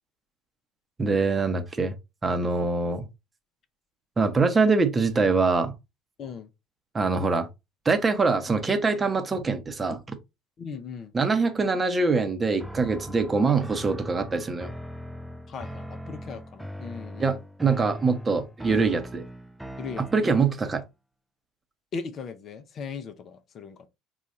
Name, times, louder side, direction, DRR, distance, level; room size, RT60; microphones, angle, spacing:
voice 1, 1.0-1.9 2.2-3.1 4.2-5.7 6.9-7.5 7.8-10.0 11.1-14.7 17.2-19.2 20.1-20.8, right 4 dB, 25° right, 0.8 m, -24 dB
voice 2, 10.6-11.1 15.5-17.4 19.8-20.2 21.9-23.9, left 5 dB, 45° left, 0.6 m, -38 dB
sound 1, 12.6-20.7, equal, 5° right, 0.4 m, -40 dB
4.1 x 2.4 x 4.0 m
figure-of-eight pair, 60°, 0 cm